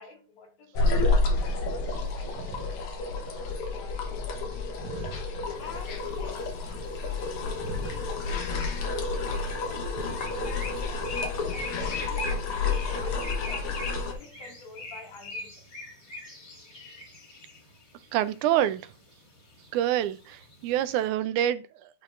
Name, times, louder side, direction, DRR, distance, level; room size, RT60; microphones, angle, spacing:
voice 1, 0.0-4.1 5.6-11.2 11.5-12.4 12.9-15.6, left 4 dB, 80° left, 3.6 m, -49 dB
sound 1, 0.7-14.1, left 3 dB, 60° left, 1.6 m, -30 dB
voice 2, 4.8-5.2 7.7-7.9 18.1-18.8 19.7-21.9, right 12 dB, 80° right, 2.0 m, -27 dB
sound 2, 5.6-21.1, left 2 dB, 30° left, 2.6 m, -43 dB
10.0 x 4.5 x 2.5 m
omnidirectional pair, 3.6 m